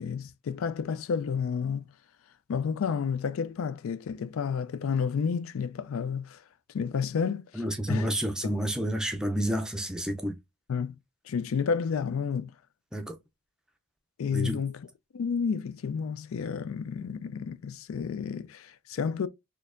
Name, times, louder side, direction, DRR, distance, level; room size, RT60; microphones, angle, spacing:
voice 1, 0.0-1.9 2.5-6.4 6.7-7.6 7.9-8.1 8.4-8.5 10.7-11.0 11.3-12.5 14.2-14.9 15.1-19.3, left 6 dB, 80° left, 0.4 m, -31 dB
voice 2, 7.6-10.3 12.9-13.1 14.3-14.6, equal, 5° right, 0.4 m, -29 dB
4.1 x 2.8 x 2.5 m
head